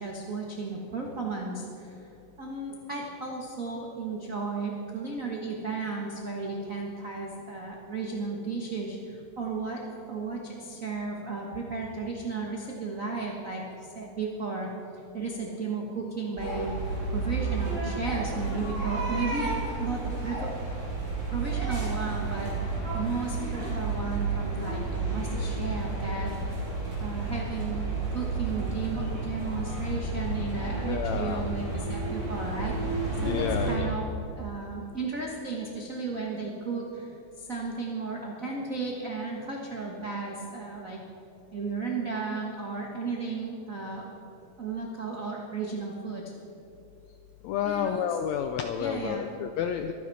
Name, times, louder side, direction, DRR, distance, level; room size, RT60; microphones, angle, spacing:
voice 1, 0.0-2.0 2.4-9.8 10.1-14.7 15.1-16.7 17.1-19.5 19.8-20.5 21.3-26.7 27.0-27.9 28.1-32.9 33.2-34.0 34.4-37.1 37.4-41.0 41.5-44.1 44.6-46.2 47.6-48.1 48.8-49.3, right 4 dB, 65° right, -2 dB, 0.8 m, -34 dB
sound 1, 16.4-33.7, right 3 dB, 30° right, 4.2 m, -31 dB
voice 2, 30.8-31.4 33.2-33.9 47.4-49.9, left 8 dB, 90° left, 7 dB, 1.6 m, -30 dB
23.5 x 10.0 x 4.1 m, 2.8 s
omnidirectional pair, 3.8 m